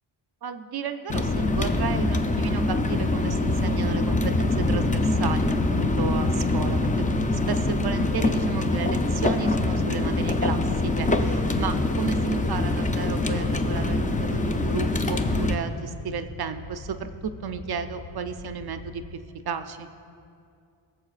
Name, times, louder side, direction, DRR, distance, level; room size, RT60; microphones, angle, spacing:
voice 1, 0.4-7.1 7.3-19.2 19.5-19.9, right 6 dB, 55° right, 9 dB, 0.5 m, -33 dB
sound 1, 1.1-15.6, left 2 dB, 15° left, 0.4 m, -24 dB
sound 2, 4.2-19.2, left 4 dB, 60° left, 0.7 m, -43 dB
20.0 x 7.1 x 2.4 m, 2.5 s
wide cardioid pair, 115°, 48 cm